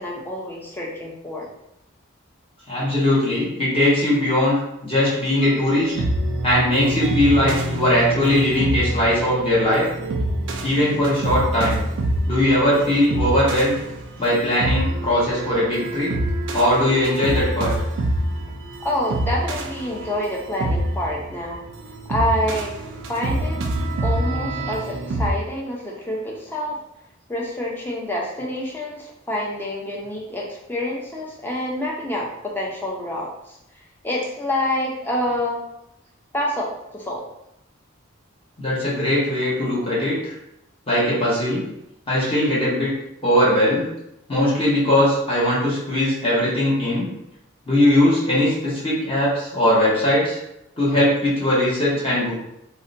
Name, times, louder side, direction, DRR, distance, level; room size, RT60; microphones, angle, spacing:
voice 1, 0.0-1.5 18.8-21.6 22.1-22.7 23.1-23.6 24.0-26.8 27.3-32.3 32.5-33.6 34.0-35.6 36.3-37.2, left 1 dB, 10° left, -3 dB, 0.4 m, -27 dB
voice 2, 2.7-5.9 6.4-9.8 10.6-11.8 12.3-13.8 14.2-16.1 16.5-17.7 38.6-40.3 40.9-41.6 42.1-42.9 43.2-43.9 44.3-47.1 47.7-50.4 50.8-52.3, left 1 dB, 25° left, -8 dB, 0.9 m, -20 dB
sound 1, 5.4-25.3, right 1 dB, 60° right, 0.3 m, -26 dB
2.7 x 2.1 x 2.5 m, 0.83 s
head